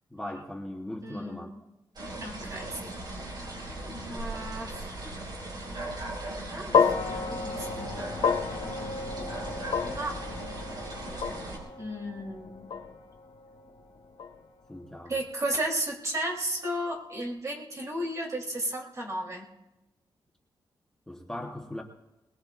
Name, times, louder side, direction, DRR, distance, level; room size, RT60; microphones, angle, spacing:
voice 1, 0.1-1.5 14.7-15.2 21.1-21.8, left 1 dB, 5° left, 1 dB, 1.0 m, -39 dB
voice 2, 1.0-1.5 2.2-2.9 4.0-4.9 6.5-7.9 9.8-10.2 11.8-12.7 15.1-19.5, right 1 dB, 35° right, -1 dB, 3.1 m, -34 dB
sound 1, 2.0-11.6, right 2 dB, 50° right, 5.2 m, -38 dB
sound 2, 6.7-15.1, left 6 dB, 85° left, 1.2 m, -31 dB
22.0 x 21.0 x 2.5 m, 0.99 s
wide cardioid pair, 130°, 9 cm